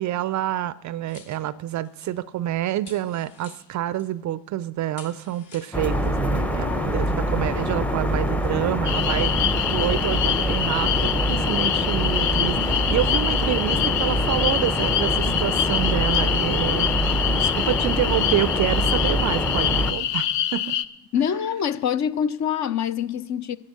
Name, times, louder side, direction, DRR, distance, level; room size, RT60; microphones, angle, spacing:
voice 1, 0.0-16.9 17.3-20.8, right 13 dB, 40° right, 0.5 m, -28 dB
sound 1, 1.1-2.5 2.8-4.2 4.8-6.3 7.3-7.4, left 6 dB, 60° left, 2.3 m, -50 dB
sound 2, 5.7-19.9, equal, 5° left, 0.7 m, -24 dB
sound 3, 8.9-20.8, left 11 dB, 80° left, 0.7 m, -25 dB
voice 2, 21.1-23.6, left 8 dB, 35° left, 0.6 m, -25 dB
11.5 x 7.6 x 7.7 m
hypercardioid pair, 60°, 48 cm